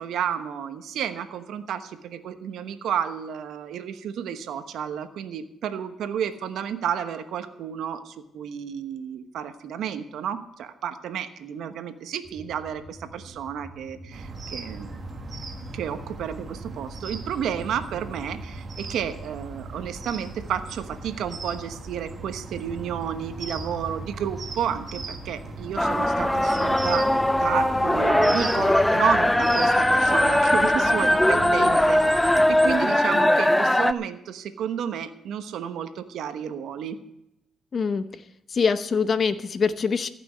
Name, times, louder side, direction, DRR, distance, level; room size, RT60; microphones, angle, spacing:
voice 1, 0.0-15.0 15.7-37.0, right 8 dB, 75° right, 9 dB, 1.1 m, -31 dB
sound 1, 12.2-31.7, right 1 dB, 10° right, 6.8 m, -44 dB
sound 2, 14.1-32.7, right 3 dB, 40° right, 1.6 m, -38 dB
sound 3, 25.8-33.9, left 1 dB, 10° left, 0.5 m, -20 dB
voice 2, 37.7-38.1 38.5-40.1, left 5 dB, 45° left, 12 dB, 0.9 m, -24 dB
15.0 x 6.1 x 9.3 m, 0.83 s
cardioid pair, 90°, 0 cm